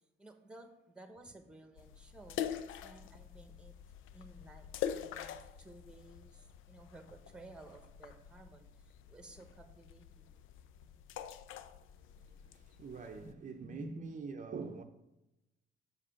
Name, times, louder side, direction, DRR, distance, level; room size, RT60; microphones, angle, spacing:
voice 1, 0.2-2.4 2.8-3.7 4.1-10.4 13.1-14.2, right 1 dB, 5° right, 1.1 m, -54 dB
sound 1, 1.8-13.3, left 9 dB, 85° left, 0.5 m, -45 dB
voice 2, 12.5-14.8, right 5 dB, 40° right, 0.6 m, -44 dB
6.6 x 5.0 x 5.7 m
cardioid pair, 90°, 20 cm